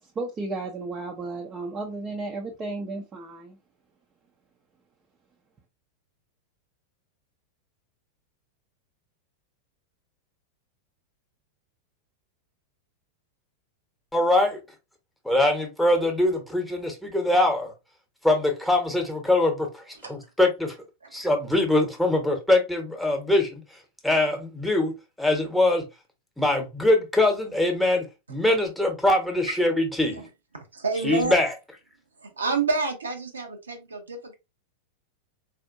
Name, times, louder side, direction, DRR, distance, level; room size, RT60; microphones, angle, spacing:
voice 1, 0.0-3.6, right 3 dB, 25° right, 0.6 m, -33 dB
voice 2, 14.1-14.6 15.2-17.7 18.2-20.8 21.1-25.9 26.4-30.2 31.0-31.5, left 1 dB, ahead, 1.0 m, -23 dB
voice 3, 30.5-31.3 32.2-34.3, right 4 dB, 75° right, 0.7 m, -28 dB
4.2 x 2.6 x 2.6 m
figure-of-eight pair, 90°, 0 cm